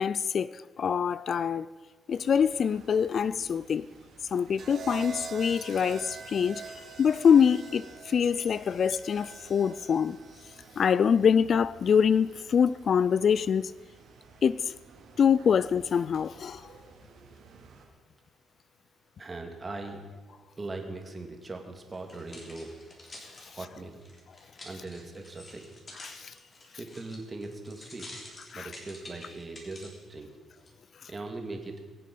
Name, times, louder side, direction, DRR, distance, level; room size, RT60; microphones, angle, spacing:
voice 1, 0.0-1.7 2.1-3.9 4.3-10.2 10.8-13.7 14.4-14.7 15.2-16.7 26.0-26.3 28.5-28.7, left 7 dB, 55° left, 0.3 m, -25 dB
sound 1, 2.1-17.9, right 4 dB, 85° right, 2.8 m, -55 dB
sound 2, 4.6-12.7 13.9-14.3, right 5 dB, 60° right, 2.7 m, -45 dB
voice 2, 19.2-20.1 20.6-22.8 23.5-24.0 24.6-25.6 26.8-28.1 28.5-30.3 31.1-31.9, right 2 dB, 25° right, 2.4 m, -40 dB
sound 3, 21.9-30.0 30.6-30.7, left 1 dB, 35° left, 3.7 m, -48 dB
23.0 x 7.6 x 5.4 m
cardioid pair, 90°, 0 cm